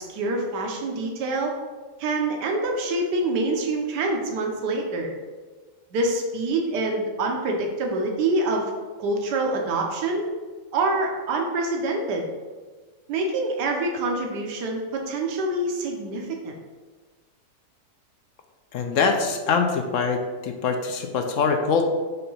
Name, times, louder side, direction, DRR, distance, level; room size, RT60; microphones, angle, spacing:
voice 1, 0.0-1.5 2.0-5.1 5.9-8.7 9.0-10.3 10.7-12.3 13.1-16.5, right 2 dB, 80° right, 1 dB, 1.5 m, -26 dB
voice 2, 18.7-21.8, left 5 dB, 65° left, 5 dB, 0.8 m, -23 dB
5.8 x 3.3 x 5.5 m, 1.4 s
omnidirectional pair, 1.8 m